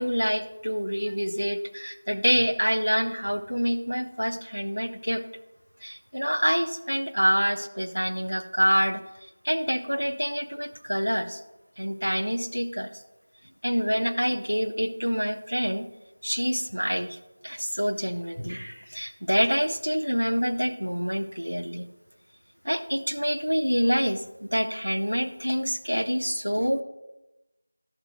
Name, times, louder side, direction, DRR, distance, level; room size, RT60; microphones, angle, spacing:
voice 1, 0.0-5.2 5.8-9.0 9.4-11.4 11.8-13.0 13.6-15.9 16.2-17.2 17.4-21.9 22.6-26.8, equal, 90° right, 12 dB, 0.7 m, -26 dB
16.5 x 7.3 x 2.2 m, 1.0 s
figure-of-eight pair, 170°, 0 cm